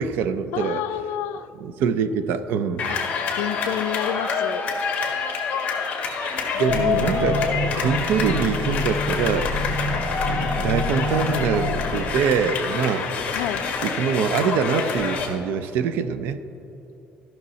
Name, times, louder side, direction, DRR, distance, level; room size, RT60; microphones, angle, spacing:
voice 1, 0.0-0.8 1.6-2.9 6.6-7.5 7.8-9.5 10.3-13.4 13.8-16.4, right 7 dB, 65° right, 12 dB, 0.5 m, -24 dB
voice 2, 0.5-1.5 2.9-3.0 3.4-4.7 6.5-7.4 13.3-13.7, left 12 dB, 80° left, 12 dB, 0.4 m, -30 dB
sound 1, 2.8-15.3, left 5 dB, 35° left, 1.5 m, -27 dB
sound 2, 6.7-12.5, left 1 dB, 5° right, 1.1 m, -27 dB
14.5 x 6.0 x 4.2 m, 3.0 s
cardioid pair, 170°, 4 cm